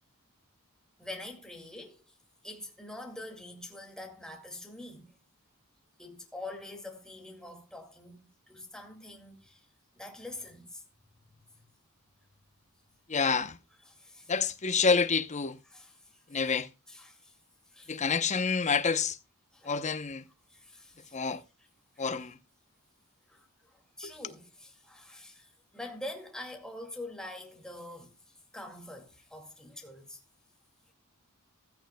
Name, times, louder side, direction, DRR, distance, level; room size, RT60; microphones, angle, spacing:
voice 1, 1.0-2.0 2.4-5.1 6.0-9.7 9.9-10.8 13.9-14.3 15.7-16.2 16.9-17.4 17.7-18.0 19.5-19.8 20.5-21.2 22.0-22.1 23.3-28.1 28.5-30.2, left 1 dB, 5° left, 2.2 m, -45 dB
voice 2, 13.1-13.6 14.3-15.6 16.3-16.7 17.9-19.2 19.6-20.2 21.1-21.4 22.0-22.4 24.0-24.1, left 5 dB, 30° left, 0.8 m, -28 dB
15.5 x 14.0 x 2.2 m
head